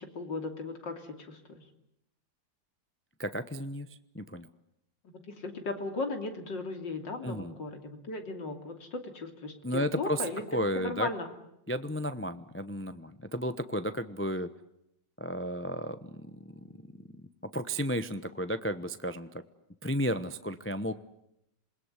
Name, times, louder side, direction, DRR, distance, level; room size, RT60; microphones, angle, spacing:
voice 1, 0.0-1.6 5.1-11.3, left 3 dB, 75° left, 6 dB, 3.5 m, -37 dB
voice 2, 3.2-3.9 4.1-4.5 7.2-7.5 9.6-11.1 11.7-14.5 15.2-16.7 17.2-19.4 19.8-20.9, equal, 15° left, 11 dB, 0.5 m, -33 dB
27.5 x 21.0 x 9.7 m, 0.80 s
omnidirectional pair, 2.0 m